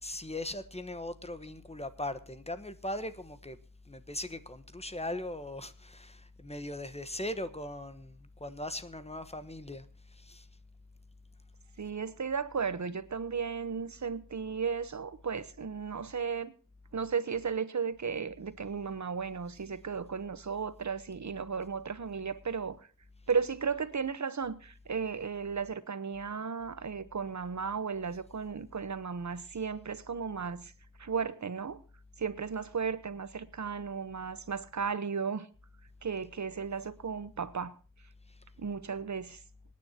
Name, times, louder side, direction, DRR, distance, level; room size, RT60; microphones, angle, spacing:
voice 1, 0.0-3.6 3.9-9.9 10.1-10.5, left 1 dB, 20° left, 1.2 m, -39 dB
voice 2, 11.8-16.5 16.9-22.8 23.3-30.7 31.0-31.8 32.2-35.5 36.0-37.7 38.6-39.4, right 6 dB, 60° right, 1.0 m, -35 dB
26.5 x 9.7 x 2.9 m
wide cardioid pair, 90°, 32 cm